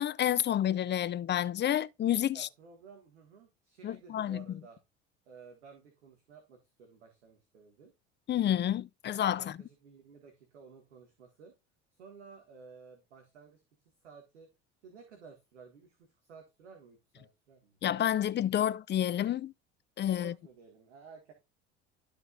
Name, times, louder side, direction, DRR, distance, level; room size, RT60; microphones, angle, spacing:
voice 1, 0.0-2.5 3.8-4.6 8.3-9.5 17.8-19.5 20.0-20.3, left 11 dB, 30° left, 0.6 m, -29 dB
voice 2, 2.3-4.8 5.3-7.9 9.3-11.5 11.9-13.6 14.0-14.5 14.8-17.8 20.1-21.3, right 5 dB, 80° right, 1.8 m, -54 dB
12.0 x 5.5 x 2.4 m
hypercardioid pair, 65°, 34 cm